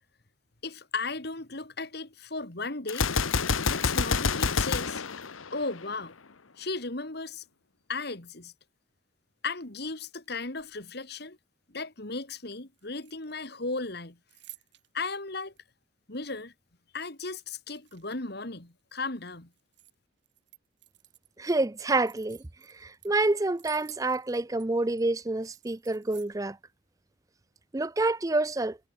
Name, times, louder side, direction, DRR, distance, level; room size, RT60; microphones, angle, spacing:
voice 1, 0.6-3.1 3.6-5.0 5.5-6.2 6.6-7.4 7.9-8.5 9.4-11.4 11.7-14.2 14.9-15.5 16.1-16.5 16.9-19.5, left 3 dB, 55° left, 2.4 m, -35 dB
Gunshot gunfire, 2.9-6.0, left 5 dB, 90° left, 1.2 m, -27 dB
sound 1, 10.1-10.9 12.7-13.6 13.8-15.1 15.6-15.7 17.1-18.3 18.7-19.9 20.2-21.3 21.8-24.7 25.0-25.1 25.4-26.4, right 16 dB, 60° right, 7.6 m, -53 dB
voice 2, 21.4-22.4 22.7-26.6 27.7-28.8, right 2 dB, 15° right, 0.5 m, -28 dB
head